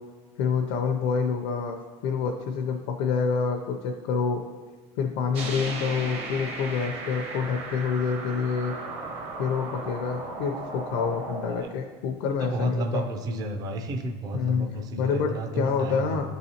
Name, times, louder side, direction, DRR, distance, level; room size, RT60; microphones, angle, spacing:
voice 1, 0.4-1.8 2.0-4.4 5.0-8.7 9.4-13.0 14.3-14.7 15.0-16.2, left 6 dB, 75° left, 2 dB, 0.5 m, -27 dB
sound 1, 5.3-11.6, right 2 dB, 40° right, 0.8 m, -36 dB
voice 2, 12.4-16.2, right 1 dB, 25° right, 5 dB, 0.4 m, -32 dB
11.5 x 4.0 x 2.8 m, 1.4 s
cardioid pair, 165°, 14 cm